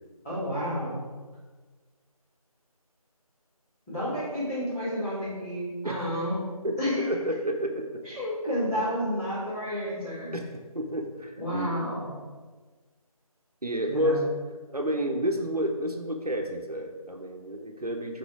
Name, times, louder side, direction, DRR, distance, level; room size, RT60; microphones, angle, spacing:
voice 1, 0.2-1.0 3.9-6.4 6.8-7.1 8.0-10.3 11.4-12.1 13.8-14.2, equal, 5° left, -17 dB, 2.2 m, -30 dB
voice 2, 6.6-8.0 10.3-10.4 10.7-11.7 13.6-14.3 14.7-18.2, equal, 85° right, 3 dB, 1.0 m, -30 dB
7.0 x 4.4 x 4.7 m, 1.4 s
figure-of-eight pair, 165°, 19 cm